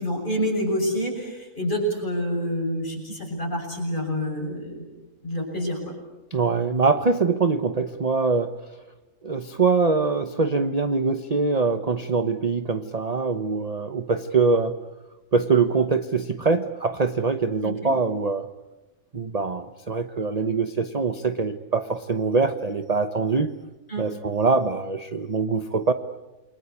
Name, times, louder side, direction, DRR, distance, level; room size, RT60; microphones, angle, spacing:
voice 1, 0.0-4.9 5.2-5.8 17.6-17.9 23.9-24.0, equal, 30° left, 1 dB, 7.3 m, -27 dB
voice 2, 6.3-8.6 9.2-14.8 15.3-18.5 19.1-23.6 24.0-25.9, right 4 dB, 30° right, 9 dB, 1.0 m, -23 dB
29.0 x 23.5 x 8.4 m, 1.1 s
omnidirectional pair, 1.6 m